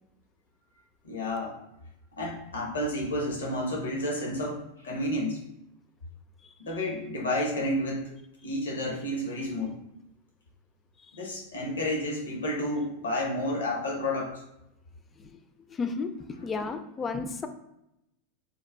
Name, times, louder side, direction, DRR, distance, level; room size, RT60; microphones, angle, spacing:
voice 1, 1.0-1.6 2.2-5.4 6.6-8.1 8.4-9.8 11.1-14.4, left 1 dB, 75° left, -2 dB, 0.9 m, -31 dB
voice 2, 15.7-16.1 16.4-17.5, left 4 dB, 20° left, 9 dB, 0.3 m, -32 dB
3.9 x 2.3 x 2.2 m, 0.84 s
figure-of-eight pair, 90°, 0 cm